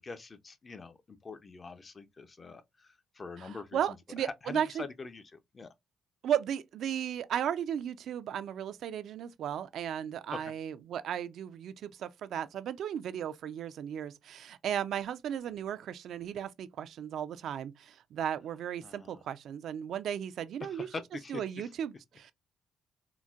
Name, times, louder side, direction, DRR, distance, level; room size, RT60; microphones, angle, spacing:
voice 1, 0.0-5.7 10.3-10.5 18.8-19.2 20.6-21.7, left 4 dB, 35° left, 0.5 m, -44 dB
voice 2, 3.4-4.8 6.2-20.9 21.3-22.3, right 9 dB, 70° right, 0.3 m, -35 dB
3.9 x 2.1 x 2.3 m
cardioid pair, 90°, 0 cm